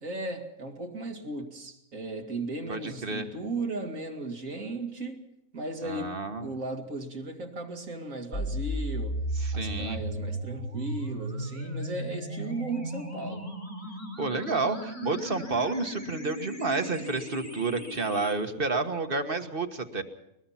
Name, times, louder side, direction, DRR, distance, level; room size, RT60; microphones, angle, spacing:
voice 1, 0.0-5.2 5.5-9.2 9.5-13.4, right 2 dB, 75° right, 3 dB, 2.7 m, -36 dB
voice 2, 2.7-3.3 5.8-6.5 9.4-10.0 14.2-20.0, right 3 dB, 45° right, 7 dB, 1.6 m, -30 dB
sound 1, 8.3-18.3, right 1 dB, 75° left, 5.5 m, -35 dB
21.5 x 21.5 x 5.8 m, 0.85 s
omnidirectional pair, 1.4 m